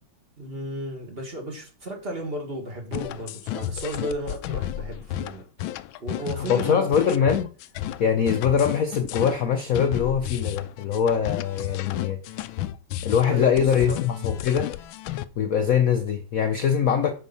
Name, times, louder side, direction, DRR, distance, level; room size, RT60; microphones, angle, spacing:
voice 1, 0.4-5.4 6.0-6.9 13.3-14.0, right 1 dB, 30° right, 1.8 m, -34 dB
sound 1, 2.9-15.3, left 13 dB, 80° left, 1.3 m, -32 dB
voice 2, 6.4-7.5 8.0-12.4 13.0-14.7 15.4-17.1, left 7 dB, 60° left, 0.9 m, -23 dB
8.6 x 4.5 x 5.5 m
omnidirectional pair, 2.2 m